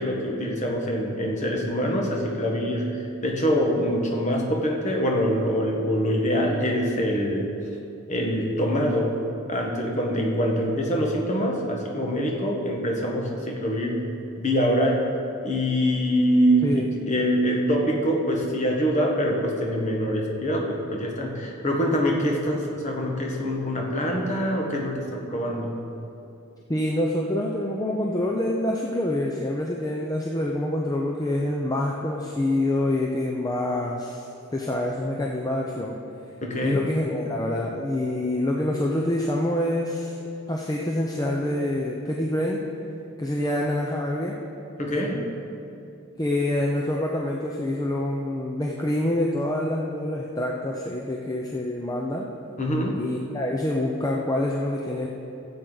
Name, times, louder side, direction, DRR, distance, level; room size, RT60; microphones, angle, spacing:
voice 1, 0.0-7.5 8.1-9.2 9.5-14.0 14.4-15.0 15.4-25.7 36.4-36.8 44.8-45.2 52.6-53.0, equal, 35° left, 0 dB, 1.3 m, -24 dB
voice 2, 26.7-34.3 34.5-36.0 36.6-40.2 40.5-42.6 43.2-44.4 46.2-52.3 53.0-55.1, left 1 dB, 15° left, -1 dB, 0.5 m, -26 dB
15.5 x 7.8 x 3.9 m, 2.7 s
head